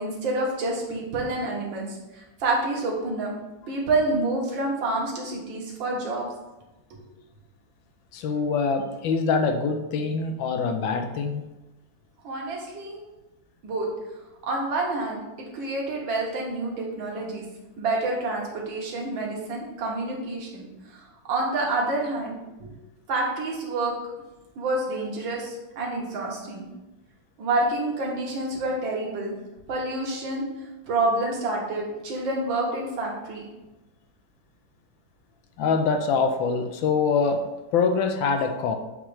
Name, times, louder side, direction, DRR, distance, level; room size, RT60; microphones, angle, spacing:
voice 1, 0.0-1.9 2.1-3.3 3.7-6.3 6.9-7.0 12.2-13.0 13.6-13.9 14.4-15.2 15.5-17.4 17.8-22.7 23.1-23.9 24.6-26.7 27.4-29.3 29.7-30.4 30.9-33.5, right 2 dB, 75° right, -2 dB, 2.1 m, -28 dB
voice 2, 8.1-11.5 35.6-37.4 37.7-38.8, left 5 dB, 85° left, 6 dB, 1.4 m, -24 dB
7.4 x 3.1 x 4.8 m, 1.0 s
omnidirectional pair, 2.1 m